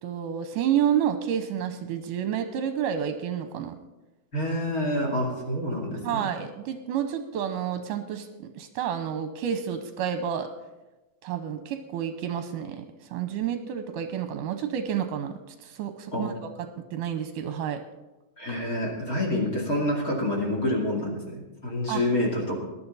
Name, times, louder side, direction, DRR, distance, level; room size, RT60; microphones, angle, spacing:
voice 1, 0.0-3.8 6.0-10.5 11.2-12.9 13.1-15.3 15.6-16.3 16.9-17.8 21.9-22.0, right 9 dB, 75° right, 7 dB, 2.2 m, -29 dB
voice 2, 4.3-6.2 16.1-16.3 18.4-22.6, left 1 dB, 25° left, 0 dB, 2.5 m, -27 dB
19.0 x 11.5 x 4.1 m, 1.1 s
omnidirectional pair, 4.1 m